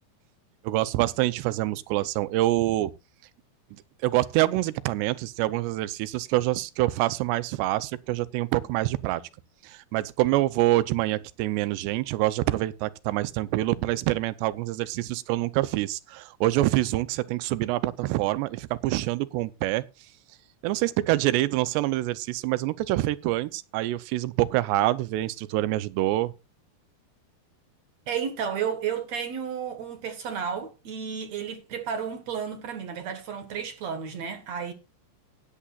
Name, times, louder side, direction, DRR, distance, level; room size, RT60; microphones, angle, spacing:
voice 1, 0.6-2.9 4.0-9.2 9.6-19.8 20.6-26.3, right 17 dB, 90° right, 2.9 m, -26 dB
voice 2, 28.1-34.7, right 7 dB, 55° right, 2.0 m, -32 dB
16.5 x 10.0 x 2.4 m
omnidirectional pair, 4.8 m